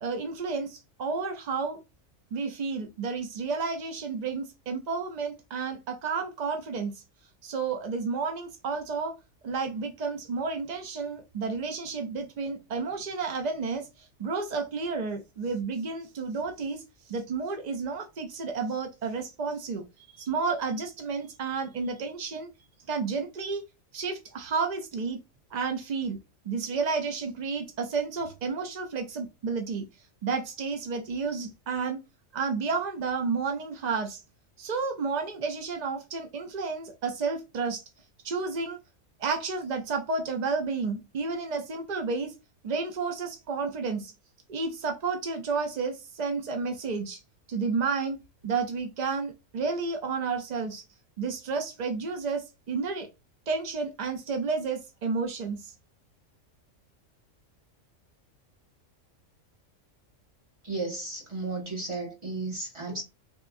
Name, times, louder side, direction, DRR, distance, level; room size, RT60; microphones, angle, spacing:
voice 1, 0.0-1.8 2.3-7.0 7.4-9.2 9.4-22.5 22.9-23.6 23.9-25.2 25.5-26.2 26.5-29.8 30.2-32.0 32.3-34.2 34.6-37.8 38.2-38.8 39.2-42.3 42.6-44.1 44.5-47.2 47.5-50.8 51.2-53.1 53.5-55.7, right 4 dB, 70° right, 0.4 m, -31 dB
voice 2, 60.6-63.0, right 3 dB, 25° right, 1.5 m, -34 dB
3.5 x 3.1 x 2.5 m
omnidirectional pair, 1.3 m